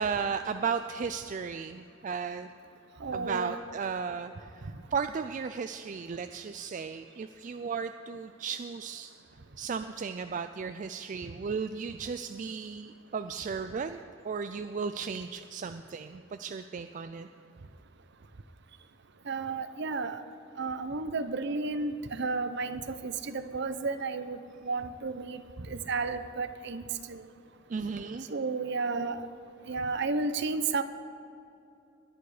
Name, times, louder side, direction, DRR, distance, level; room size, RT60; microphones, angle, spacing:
voice 1, 0.0-2.5 3.1-9.1 9.6-14.0 14.2-17.3 27.7-28.3, right 5 dB, 40° right, 9 dB, 0.3 m, -35 dB
voice 2, 3.0-3.5 4.7-4.8 19.3-20.2 20.6-25.4 25.7-27.2 28.3-29.2 29.7-30.8, right 3 dB, 60° right, 11 dB, 0.7 m, -32 dB
21.0 x 9.3 x 4.9 m, 2.7 s
head